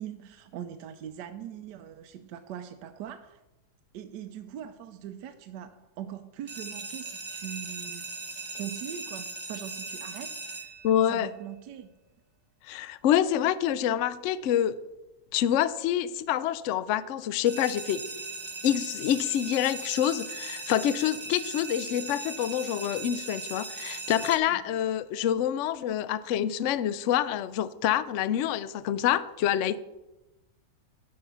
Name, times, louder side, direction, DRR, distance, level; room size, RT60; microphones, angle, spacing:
voice 1, 0.0-3.4 3.9-8.1 8.5-10.8 11.1-11.9 24.5-24.7, right 10 dB, 80° right, 8 dB, 1.2 m, -41 dB
sound 1, 6.5-11.3 17.4-24.4, right 3 dB, 30° right, 0.5 m, -39 dB
voice 2, 10.8-11.3 12.7-14.8 15.3-18.1 18.6-29.8, left 10 dB, 70° left, 16 dB, 0.7 m, -27 dB
10.5 x 5.7 x 6.8 m, 1.0 s
omnidirectional pair, 1.8 m